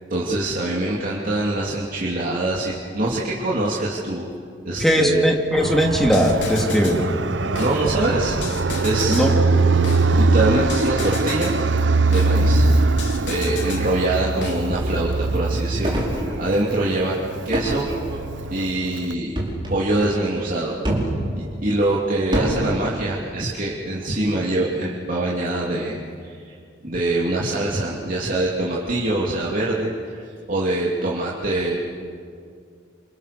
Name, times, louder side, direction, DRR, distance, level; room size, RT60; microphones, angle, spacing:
voice 1, 0.1-4.3 4.6-5.3 7.6-8.4 8.8-9.3 10.2-11.5 12.0-17.2 17.4-17.9 18.5-19.3 19.7-20.8 21.3-26.5 26.8-31.8, right 2 dB, 50° right, -5 dB, 3.0 m, -24 dB
voice 2, 4.8-7.1 9.1-9.3, equal, ahead, 0 dB, 2.9 m, -19 dB
Fixed-wing aircraft airplane, 5.6-19.1, right 3 dB, 85° right, 0.8 m, -22 dB
sound 1, 5.8-7.0 7.6-9.3 9.8-11.6 12.1-13.9 14.4-14.9, left 2 dB, 70° left, 3.2 m, -33 dB
sound 2, 15.8-16.8 17.5-18.5 19.3-19.8 20.8-21.2 22.3-22.7, right 1 dB, 25° right, 5.1 m, -25 dB
28.5 x 27.5 x 6.9 m, 2.3 s
head